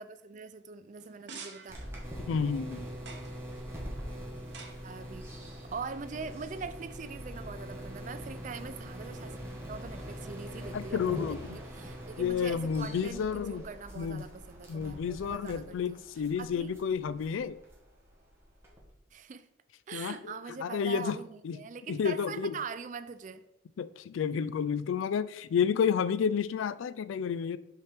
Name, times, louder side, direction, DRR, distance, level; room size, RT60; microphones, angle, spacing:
voice 1, 0.0-1.8 4.8-5.3 5.7-9.3 9.7-16.0 16.4-16.7 19.1-19.5 19.9-23.4, right 5 dB, 40° right, 0.3 m, -42 dB
sound 1, 1.0-6.5, right 4 dB, 60° right, 1.0 m, -52 dB
sound 2, 1.7-18.9, equal, 15° right, 1.3 m, -43 dB
voice 2, 2.3-2.9 10.7-11.6 12.2-13.6 14.0-14.2 14.7-17.6 19.9-20.3 20.6-21.2 21.4-21.6 21.9-22.5 23.8-27.6, left 7 dB, 90° left, 0.3 m, -30 dB
5.9 x 5.6 x 3.4 m
head